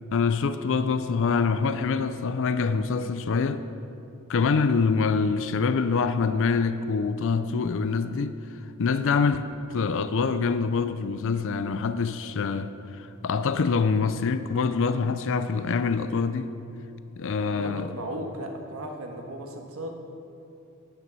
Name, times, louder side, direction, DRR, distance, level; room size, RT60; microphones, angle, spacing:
voice 1, 0.1-3.6 4.3-8.4 8.8-16.5 17.2-17.9, left 5 dB, 65° left, 0.4 m, -25 dB
voice 2, 17.4-20.0, right 1 dB, 85° right, 1.4 m, -36 dB
10.0 x 9.4 x 5.4 m
head